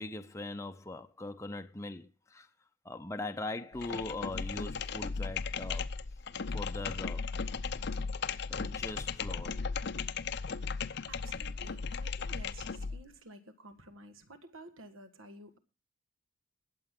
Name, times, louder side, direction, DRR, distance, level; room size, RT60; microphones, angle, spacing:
voice 1, 0.0-2.5 2.8-5.9 6.5-7.3 8.5-9.6, left 2 dB, 15° left, 0.6 m, -41 dB
sound 1, 3.7-13.0, left 5 dB, 55° left, 0.6 m, -36 dB
voice 2, 11.1-15.6, right 1 dB, 75° right, 1.6 m, -52 dB
21.0 x 7.9 x 3.6 m
head